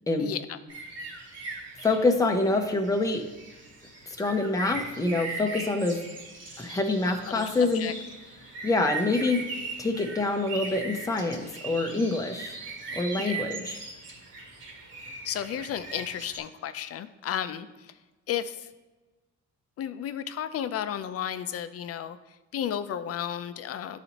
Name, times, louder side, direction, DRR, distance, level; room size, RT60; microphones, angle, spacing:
voice 1, 0.2-0.6 7.3-7.5 7.7-7.9 13.2-13.5 15.2-17.7 18.3-18.7 19.8-22.2 22.5-24.0, left 9 dB, 50° left, 12 dB, 0.5 m, -33 dB
sound 1, 0.7-16.4, right 3 dB, 55° right, 1.8 m, -40 dB
voice 2, 1.8-3.3 4.2-6.0 6.6-7.9 8.6-9.5 9.8-12.6 12.9-13.8, left 2 dB, 10° left, 3 dB, 0.7 m, -26 dB
10.5 x 4.0 x 2.9 m, 1.2 s
cardioid pair, 90°, 30 cm